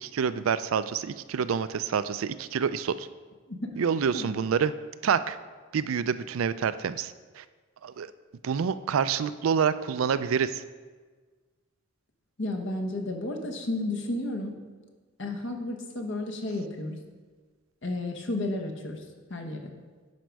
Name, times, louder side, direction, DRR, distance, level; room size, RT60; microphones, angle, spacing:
voice 1, 0.0-3.1 3.8-4.7 5.0-5.4 5.7-7.4 7.8-8.1 8.4-10.6, right 7 dB, 85° right, 13 dB, 0.4 m, -27 dB
voice 2, 12.4-14.5 15.2-17.0 17.8-19.0 19.3-19.6, left 2 dB, 65° left, 4 dB, 1.1 m, -32 dB
10.5 x 5.1 x 4.6 m, 1.4 s
head